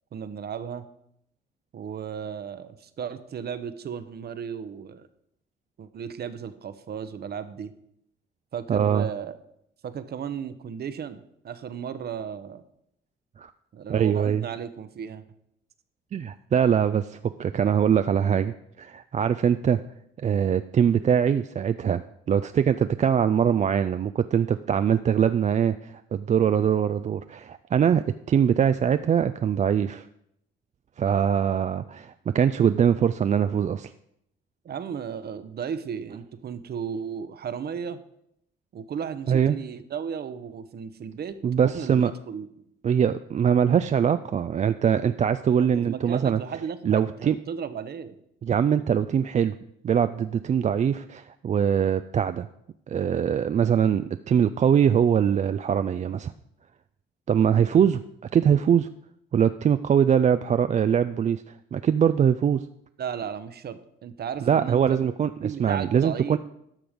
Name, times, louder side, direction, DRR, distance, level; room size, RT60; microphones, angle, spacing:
voice 1, 0.1-0.9 1.7-5.1 5.8-7.7 8.5-9.4 9.8-12.6 13.7-15.2 34.6-38.0 38.7-41.4 41.6-42.5 45.6-48.2 63.0-66.4, right 7 dB, 55° right, 12 dB, 0.9 m, -35 dB
voice 2, 8.7-9.1 13.4-13.5 13.9-14.4 16.1-19.8 20.2-30.1 31.0-33.9 39.3-39.6 41.4-42.1 42.8-46.4 46.9-47.4 48.4-49.6 49.8-52.5 52.9-56.3 57.3-58.9 59.3-61.4 61.7-62.6 64.5-66.4, right 8 dB, 35° right, 11 dB, 0.4 m, -22 dB
12.0 x 6.1 x 5.1 m, 0.75 s
cardioid pair, 90°, 20 cm